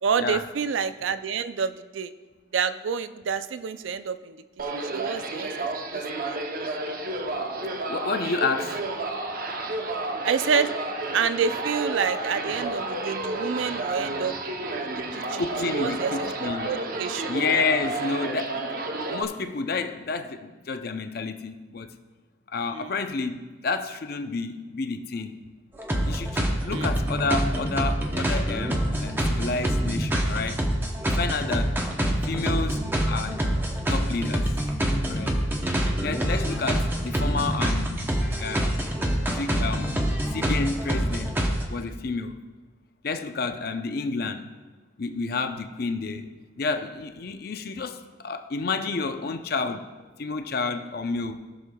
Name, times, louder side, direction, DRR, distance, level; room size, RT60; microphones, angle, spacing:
voice 1, 0.0-2.1 2.5-4.4 4.7-6.0 6.3-6.4 10.2-10.7 11.1-14.4 14.8-16.3 16.6-17.4 22.7-22.9 26.6-26.9 35.8-35.9, right 6 dB, 85° right, 12 dB, 0.4 m, -28 dB
sound 1, 4.6-19.2, right 2 dB, 50° right, 0.7 m, -31 dB
voice 2, 7.9-8.8 15.4-16.8 17.3-21.9 22.5-25.4 26.1-30.6 31.2-31.8 32.3-33.4 33.9-34.6 35.1-35.4 36.0-38.1 38.4-38.8 39.3-39.9 40.3-41.4 41.7-42.4 43.0-44.5 45.0-46.3 46.6-49.9 50.2-51.5, left 4 dB, 55° left, 8 dB, 0.5 m, -30 dB
sound 2, 25.8-41.6, equal, 10° right, 0.8 m, -26 dB
17.5 x 6.4 x 2.3 m, 1.3 s
head